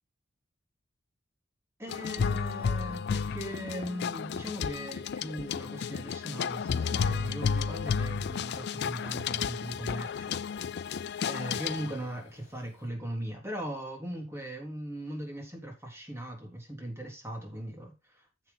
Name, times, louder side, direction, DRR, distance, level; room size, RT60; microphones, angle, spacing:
voice 1, 1.8-10.4 10.9-17.9, right 1 dB, 15° right, 3.6 m, -39 dB
sound 1, 1.9-12.1, left 6 dB, 55° left, 0.4 m, -32 dB
10.0 x 7.4 x 3.9 m
head